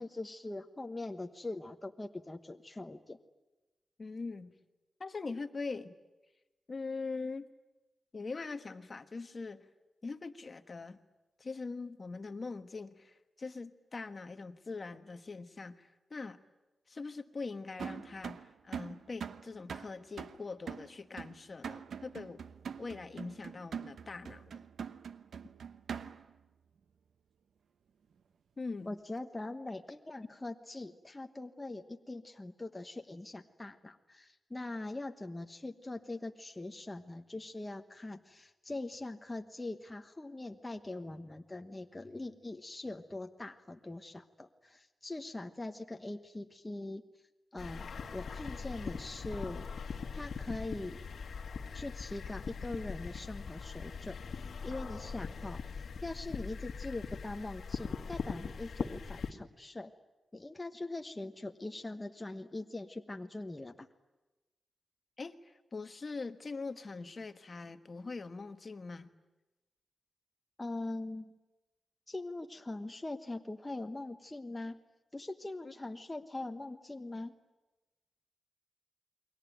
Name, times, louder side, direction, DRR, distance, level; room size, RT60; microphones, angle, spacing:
voice 1, 0.0-3.2 28.9-47.0 47.5-49.6 50.1-51.0 51.7-54.2 54.6-55.6 56.0-59.9 60.3-63.9 70.6-71.3 72.1-74.8 75.1-77.3, left 2 dB, 15° left, 5 dB, 1.1 m, -42 dB
voice 2, 4.0-4.6 5.0-5.9 6.7-7.5 8.1-9.7 10.0-11.0 11.4-16.4 16.9-22.4 22.8-24.6 28.6-29.0 65.2-69.1 75.6-75.7, left 4 dB, 35° left, 9 dB, 1.2 m, -42 dB
sound 1, 17.8-26.4, right 7 dB, 90° right, 1.0 m, -44 dB
sound 2, 47.6-59.3, left 5 dB, 70° left, 1.7 m, -41 dB
29.0 x 22.5 x 9.2 m, 1.1 s
wide cardioid pair, 135°, 0 cm